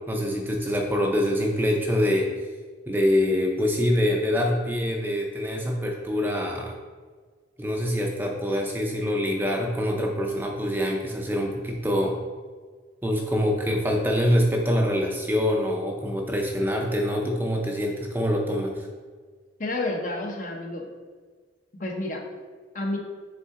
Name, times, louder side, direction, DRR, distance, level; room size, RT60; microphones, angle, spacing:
voice 1, 0.1-2.3 2.9-6.7 7.6-12.2 13.0-18.9, equal, 10° right, 0 dB, 0.5 m, -25 dB
voice 2, 19.6-20.9 21.7-22.3 22.7-23.0, left 2 dB, 45° left, 1 dB, 0.8 m, -30 dB
6.9 x 3.8 x 3.7 m, 1.5 s
head